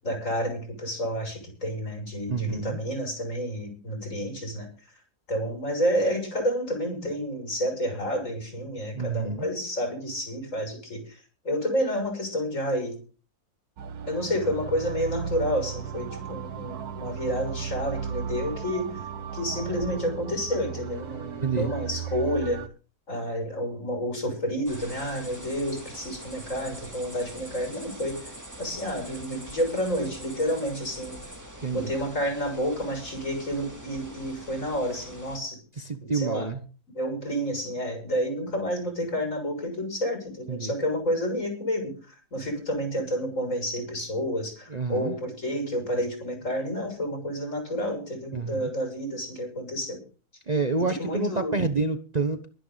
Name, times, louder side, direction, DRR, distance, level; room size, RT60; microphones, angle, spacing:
voice 1, 0.0-4.7 5.3-13.0 14.1-18.9 19.3-22.6 23.1-28.3 28.6-31.2 31.7-35.6 36.0-36.5 36.9-50.0 50.8-51.6, equal, 55° left, 6.9 m, -30 dB
voice 2, 2.3-2.8 8.9-9.5 21.4-21.7 31.6-31.9 35.8-36.6 40.5-40.7 44.7-45.2 48.3-48.7 50.5-52.5, right 4 dB, 30° right, 1.0 m, -28 dB
sound 1, 13.8-22.7, right 7 dB, 80° right, 1.6 m, -35 dB
sound 2, 24.7-35.4, right 1 dB, 10° right, 2.6 m, -43 dB
24.0 x 10.5 x 4.0 m
omnidirectional pair, 1.6 m